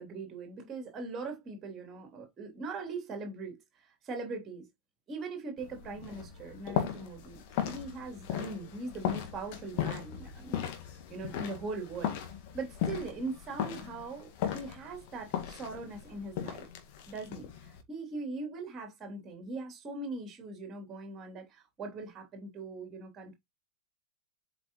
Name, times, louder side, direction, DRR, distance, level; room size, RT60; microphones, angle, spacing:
voice 1, 0.0-4.7 5.1-12.2 12.5-16.7 17.1-23.3, right 3 dB, 25° right, 3.1 m, -41 dB
sound 1, 5.6-17.8, left 9 dB, 45° left, 1.8 m, -37 dB
7.9 x 4.9 x 3.1 m
figure-of-eight pair, 90°, 0 cm